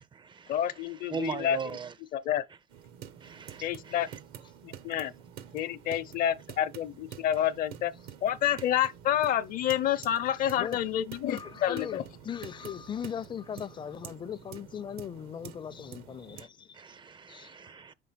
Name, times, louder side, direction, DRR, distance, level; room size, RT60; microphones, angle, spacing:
voice 1, 0.5-1.6 2.1-2.4 3.6-4.1 4.6-5.1 5.5-7.9 8.2-12.0, left 10 dB, 65° left, 0.7 m, -29 dB
voice 2, 1.1-1.9 3.2-3.6 16.8-17.9, right 6 dB, 30° right, 0.4 m, -38 dB
sound 1, 2.7-16.4, right 9 dB, 85° right, 1.1 m, -48 dB
voice 3, 11.3-16.8 17.3-17.8, left 8 dB, 30° left, 0.5 m, -39 dB
6.2 x 5.4 x 5.7 m
cardioid pair, 125°, 16 cm